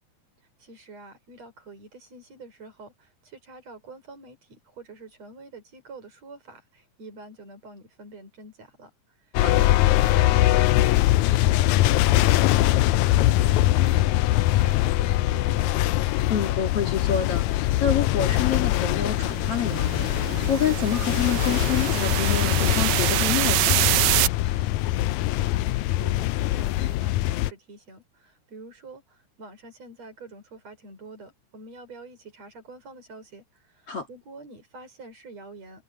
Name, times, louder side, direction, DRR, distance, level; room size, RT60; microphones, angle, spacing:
voice 1, 0.6-8.9 9.5-11.1 11.5-14.2 14.6-15.8 24.4-35.8, right 3 dB, 55° right, 6.7 m, -46 dB
sound 1, 9.3-27.5, left 16 dB, 80° left, 1.7 m, -22 dB
voice 2, 16.3-23.8 33.9-34.1, left 8 dB, 50° left, 2.7 m, -28 dB
sound 2, 18.3-24.3, right 17 dB, 85° right, 2.3 m, -26 dB
omnidirectional pair, 3.7 m